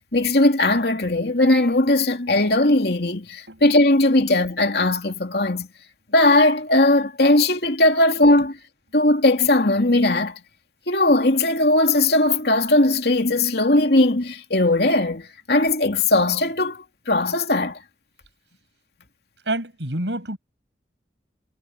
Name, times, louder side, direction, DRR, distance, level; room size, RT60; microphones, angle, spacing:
voice 1, 0.1-5.7 6.1-8.6 8.9-10.4 10.9-17.8, left 2 dB, 65° left, 2.7 m, -19 dB
voice 2, 19.5-20.4, right 1 dB, 80° right, 6.7 m, -28 dB
head